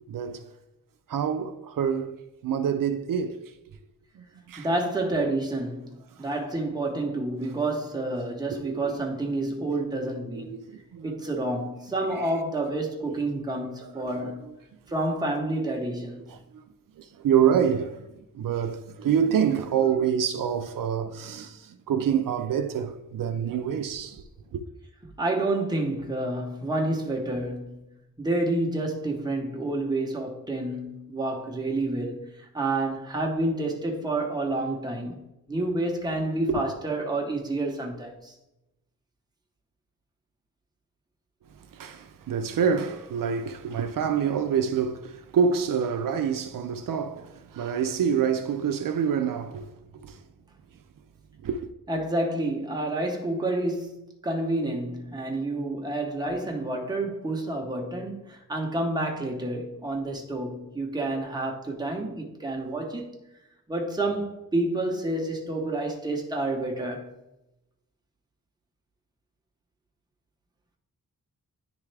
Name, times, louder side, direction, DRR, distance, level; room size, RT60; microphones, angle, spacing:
voice 1, 0.1-0.4 1.1-3.5 4.1-4.7 6.1-6.3 8.5-8.9 10.3-11.1 12.1-12.3 13.1-13.2 13.5-14.1 16.3-16.6 16.9-24.2 24.5-24.6 36.5-36.6 41.5-50.3 51.4-51.7, right 7 dB, 75° right, 0.5 m, -27 dB
voice 2, 4.6-10.6 11.0-14.5 14.9-16.3 25.2-38.3 51.9-63.1 63.7-67.1, right 2 dB, 10° right, 0.9 m, -29 dB
9.9 x 3.5 x 3.3 m
wide cardioid pair, 145°, 33 cm